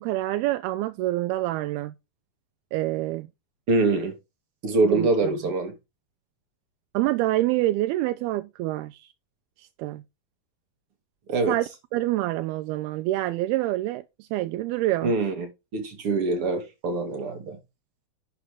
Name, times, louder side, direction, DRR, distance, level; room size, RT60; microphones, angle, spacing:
voice 1, 0.0-1.9 2.7-3.3 4.8-5.4 6.9-9.1 9.6-10.0 11.5-11.7 11.9-15.1, right 16 dB, 85° right, 2.6 m, -26 dB
voice 2, 3.7-4.1 4.6-5.7 11.3-11.6 15.0-15.5 15.7-17.6, right 3 dB, 40° right, 2.8 m, -24 dB
11.0 x 6.2 x 3.6 m
omnidirectional pair, 4.4 m